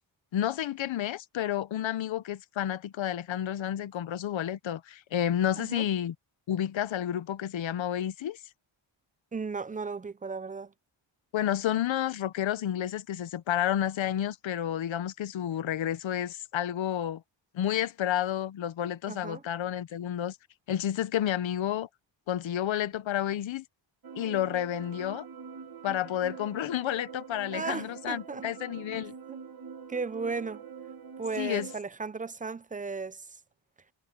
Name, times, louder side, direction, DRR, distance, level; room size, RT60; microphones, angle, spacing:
voice 1, 0.3-6.1 6.5-8.4 11.3-17.2 17.5-20.4 20.7-21.9 22.3-23.6 24.2-25.3 25.8-29.1 31.4-31.7, left 11 dB, 80° left, 1.0 m, -30 dB
voice 2, 9.3-10.7 19.1-19.4 27.5-28.4 29.3-29.4 29.9-30.6 31.2-33.3, right 4 dB, 20° right, 0.5 m, -35 dB
sound 1, 24.0-31.8, right 6 dB, 50° right, 2.2 m, -44 dB
wide cardioid pair, 130°, 46 cm